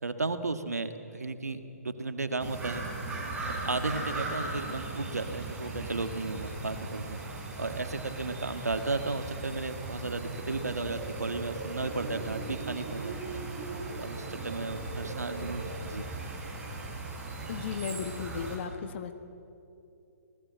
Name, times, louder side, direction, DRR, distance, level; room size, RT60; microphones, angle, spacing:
voice 1, 0.0-2.8 3.5-7.2 7.6-13.4 14.0-16.1, right 3 dB, 80° right, 9 dB, 1.9 m, -34 dB
sound 1, 2.4-18.6, right 2 dB, 10° right, 5.1 m, -39 dB
sound 2, 10.6-15.8, right 4 dB, 45° right, 5.4 m, -42 dB
voice 2, 17.5-19.1, left 7 dB, 45° left, 9 dB, 1.5 m, -35 dB
28.5 x 19.0 x 7.7 m, 2.8 s
figure-of-eight pair, 135°, 8 cm